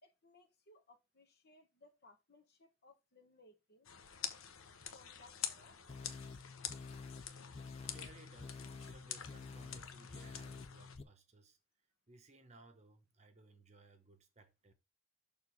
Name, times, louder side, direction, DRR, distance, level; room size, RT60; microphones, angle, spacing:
voice 1, 0.0-3.9 4.9-5.8, left 2 dB, 50° left, 1.2 m, -64 dB
sound 1, 3.9-11.0, left 9 dB, 80° left, 1.0 m, -47 dB
sound 2, 5.9-11.0, left 4 dB, 30° left, 0.4 m, -50 dB
voice 2, 7.8-11.6 12.1-14.7, right 3 dB, 30° right, 0.9 m, -61 dB
6.7 x 3.6 x 5.9 m
head